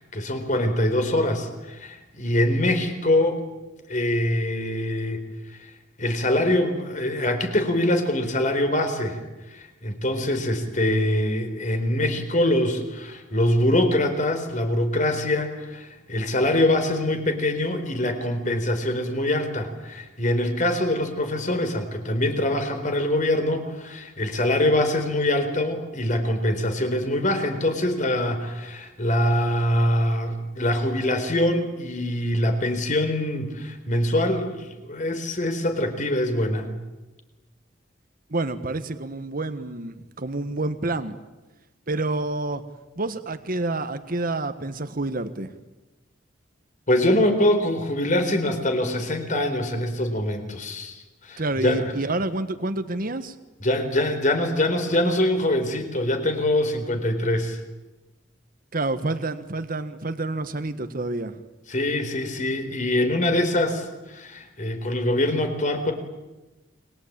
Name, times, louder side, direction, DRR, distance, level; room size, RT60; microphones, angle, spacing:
voice 1, 0.0-3.4 3.9-5.2 6.0-9.2 9.5-36.8 46.9-51.0 51.2-51.9 53.6-57.6 61.7-65.9, left 1 dB, 45° left, 7 dB, 4.2 m, -24 dB
voice 2, 38.3-41.2 41.9-42.6 43.0-45.5 51.4-53.4 58.7-61.3, right 2 dB, 50° right, 9 dB, 1.4 m, -28 dB
29.5 x 23.0 x 8.8 m, 1.1 s
head